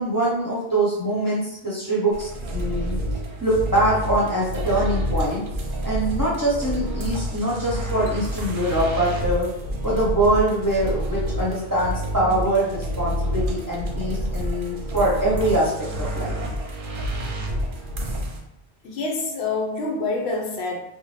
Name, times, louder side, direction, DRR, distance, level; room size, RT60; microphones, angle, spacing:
voice 1, 0.0-3.0 3.4-5.4 5.8-9.5 9.8-15.7 16.0-16.3, right 1 dB, 25° right, -7 dB, 0.6 m, -23 dB
sound 1, 2.1-18.4, equal, 60° right, 0.7 m, -28 dB
voice 2, 18.8-20.8, left 3 dB, 75° left, 1 dB, 0.9 m, -26 dB
2.7 x 2.1 x 3.1 m, 0.80 s
omnidirectional pair, 1.1 m